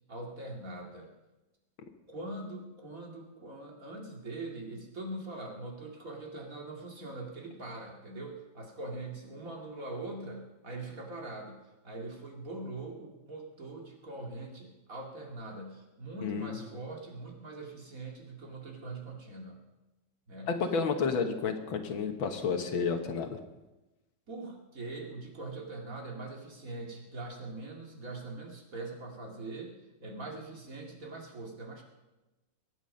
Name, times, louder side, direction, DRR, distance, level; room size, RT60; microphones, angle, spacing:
voice 1, 0.1-1.1 2.1-19.6 20.3-20.5 24.3-31.8, right 2 dB, 45° right, 0 dB, 2.6 m, -42 dB
voice 2, 16.2-16.6 20.5-23.4, left 5 dB, 80° left, 6 dB, 2.1 m, -31 dB
23.5 x 9.3 x 5.3 m, 1.1 s
omnidirectional pair, 2.2 m